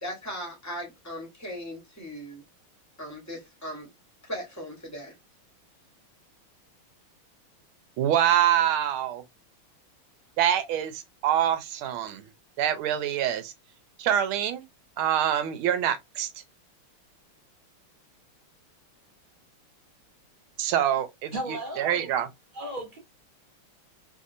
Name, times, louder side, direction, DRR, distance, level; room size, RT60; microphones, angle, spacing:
voice 1, 0.0-2.4 3.0-3.9 4.2-5.1, equal, 10° left, 0.8 m, -38 dB
voice 2, 8.0-9.2 10.4-12.3 12.6-13.5 14.0-14.6 15.0-16.3 20.6-22.3, right 10 dB, 80° right, 1.4 m, -25 dB
voice 3, 21.3-22.1 22.5-23.0, right 1 dB, 30° right, 1.0 m, -35 dB
3.5 x 2.7 x 2.5 m
omnidirectional pair, 2.4 m